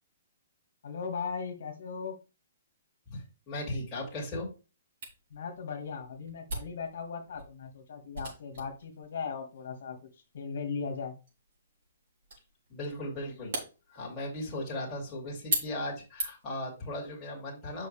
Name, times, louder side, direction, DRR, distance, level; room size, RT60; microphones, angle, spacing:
voice 1, 0.8-2.1 5.3-10.0 10.3-11.2, left 5 dB, 55° left, 3 dB, 1.9 m, -38 dB
voice 2, 3.1-4.5 12.7-13.5 13.9-17.9, left 1 dB, 10° left, -5 dB, 2.6 m, -37 dB
Camera, 5.0-16.6, right 2 dB, 50° right, 3.8 m, -41 dB
8.1 x 5.8 x 3.4 m, 0.31 s
hypercardioid pair, 175°, 0 cm